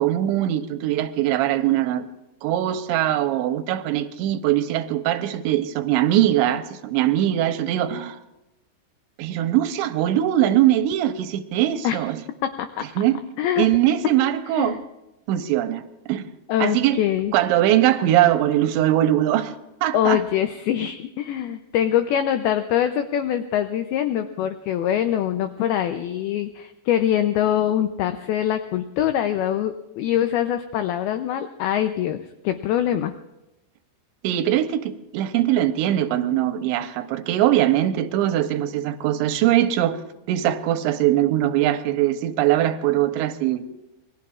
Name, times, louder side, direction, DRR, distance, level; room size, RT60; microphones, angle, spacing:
voice 1, 0.0-2.1 2.4-8.2 9.2-12.2 13.0-13.2 13.6-14.8 15.3-15.8 16.1-16.2 16.6-17.0 17.3-19.5 19.8-20.2 34.2-40.0 40.3-43.6, right 12 dB, 90° right, 3.1 m, -21 dB
voice 2, 12.4-12.8 13.4-13.7 14.5-14.8 16.5-17.3 19.9-32.2 32.4-33.1, left 10 dB, 85° left, 2.2 m, -23 dB
27.5 x 21.5 x 2.4 m
omnidirectional pair, 5.2 m